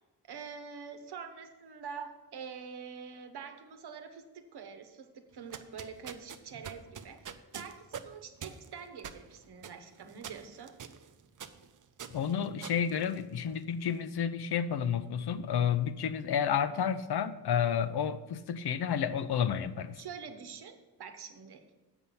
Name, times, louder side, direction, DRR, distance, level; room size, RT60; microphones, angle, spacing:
voice 1, 0.2-7.2 7.5-10.7 20.0-21.6, right 6 dB, 70° right, 7 dB, 1.0 m, -45 dB
sound 1, 5.3-13.7, right 7 dB, 50° right, 0.6 m, -46 dB
voice 2, 12.1-20.0, left 8 dB, 70° left, 12 dB, 0.6 m, -31 dB
8.0 x 5.6 x 6.9 m, 1.1 s
wide cardioid pair, 145°, 40 cm